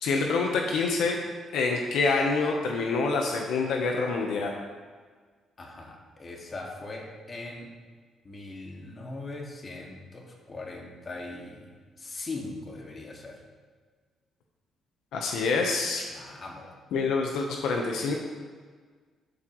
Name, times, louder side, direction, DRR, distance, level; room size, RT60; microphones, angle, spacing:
voice 1, 0.0-1.2 1.5-4.5 15.1-16.1 16.9-18.1, left 4 dB, 80° left, 1 dB, 1.0 m, -26 dB
voice 2, 5.6-7.7 8.2-11.7 12.0-13.4 16.1-16.7, left 2 dB, 35° left, -1 dB, 2.0 m, -40 dB
12.5 x 8.1 x 3.1 m, 1.5 s
cardioid pair, 90°, 0 cm